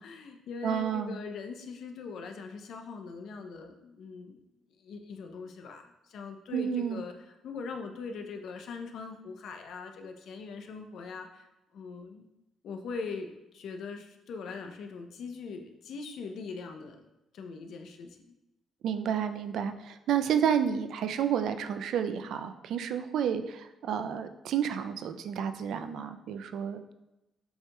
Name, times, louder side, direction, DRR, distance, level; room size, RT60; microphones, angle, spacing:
voice 1, 0.0-4.4 4.8-12.3 12.6-17.0 17.3-18.3, left 4 dB, 70° left, 5 dB, 0.5 m, -41 dB
voice 2, 0.6-1.2 6.5-7.0 18.8-26.9, right 8 dB, 75° right, 9 dB, 0.3 m, -30 dB
7.7 x 2.9 x 2.2 m, 0.95 s
cardioid pair, 90°, 0 cm